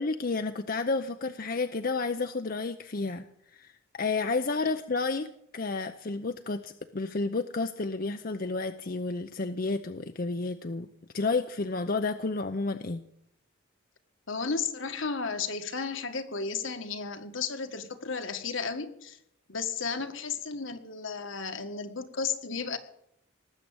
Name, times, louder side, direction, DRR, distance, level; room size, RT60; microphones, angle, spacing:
voice 1, 0.0-5.3 5.5-10.9 11.1-13.0, left 3 dB, 45° left, 8 dB, 0.7 m, -31 dB
voice 2, 14.3-19.2 19.5-22.8, left 5 dB, 70° left, 7 dB, 1.7 m, -33 dB
19.0 x 7.8 x 8.7 m, 0.74 s
head